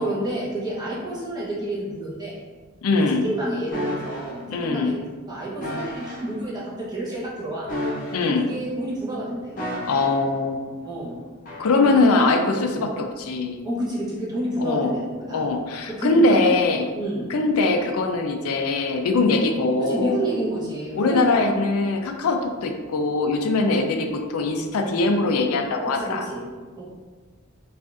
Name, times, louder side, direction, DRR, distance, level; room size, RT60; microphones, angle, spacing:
voice 1, 0.0-2.4 3.1-5.0 5.3-7.7 8.2-9.5 10.8-11.1 12.0-12.2 12.7-13.0 13.6-15.4 16.0-16.5 16.9-17.3 19.8-21.4 23.7-23.9 25.9-26.4 26.8-26.9, right 1 dB, 20° right, -7 dB, 0.9 m, -29 dB
voice 2, 2.8-3.2 4.5-4.9 8.1-8.5 9.9-10.9 11.6-13.6 14.6-14.9 15.3-16.9 17.3-20.2 20.9-26.2, left 3 dB, 90° left, 4 dB, 0.4 m, -22 dB
sound 1, 3.7-4.3 5.6-6.3 7.6-8.6 9.6-10.3 11.5-11.7, left 1 dB, 40° left, 0.8 m, -31 dB
4.9 x 2.5 x 2.4 m, 1.4 s
head